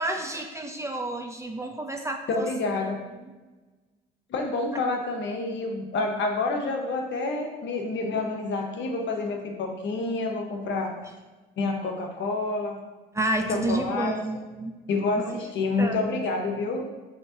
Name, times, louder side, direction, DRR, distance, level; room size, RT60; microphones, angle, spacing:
voice 1, 0.0-2.5 3.2-3.3 13.1-14.7 15.2-15.4 15.8-16.1, right 1 dB, 15° right, 3 dB, 0.5 m, -30 dB
voice 2, 2.3-3.0 4.3-10.9 11.6-12.8 13.5-14.2 14.9-16.9, left 3 dB, 60° left, 2 dB, 0.9 m, -28 dB
6.3 x 2.9 x 2.8 m, 1.2 s
supercardioid pair, 65°, 21 cm